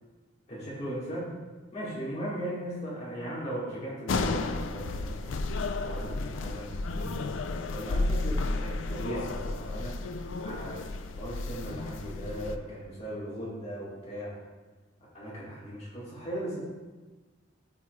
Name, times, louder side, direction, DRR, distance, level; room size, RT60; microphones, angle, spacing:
voice 1, 0.5-1.3 1.7-5.4 5.8-7.4 7.7-10.0 10.4-10.8 11.2-14.4 15.1-16.6, right 1 dB, 35° left, -7 dB, 1.8 m, -37 dB
sound 1, 4.1-12.6, left 3 dB, 80° left, 0.5 m, -32 dB
14.0 x 4.7 x 2.4 m, 1.3 s
head